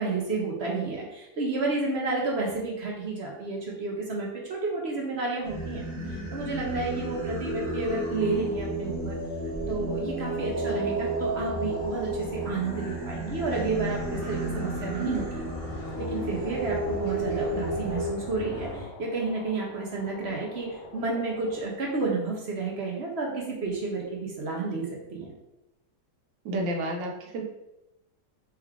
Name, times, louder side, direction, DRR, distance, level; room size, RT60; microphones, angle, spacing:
voice 1, 0.0-5.8 6.3-9.2 9.7-15.4 16.0-25.4, right 3 dB, 60° right, -2 dB, 0.7 m, -31 dB
Singing, 5.4-18.1, right 1 dB, 10° right, 0.7 m, -32 dB
sound 1, 10.1-21.7, left 4 dB, 85° left, 1.3 m, -45 dB
sound 2, 13.5-18.8, equal, 30° right, 1.6 m, -41 dB
voice 2, 26.4-27.4, right 1 dB, 85° right, 1 dB, 1.4 m, -30 dB
3.3 x 3.1 x 3.5 m, 0.92 s
omnidirectional pair, 2.0 m